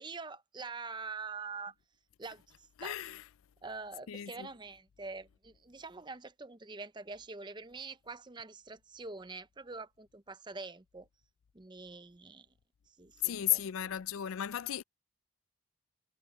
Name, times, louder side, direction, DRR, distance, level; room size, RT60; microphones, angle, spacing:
voice 1, 0.0-1.7 2.2-3.0 3.6-11.1 11.5-12.5 13.0-14.0, right 4 dB, 20° right, 0.6 m, -45 dB
voice 2, 2.8-3.2 4.1-4.5 13.2-14.8, left 12 dB, 85° left, 0.4 m, -34 dB
head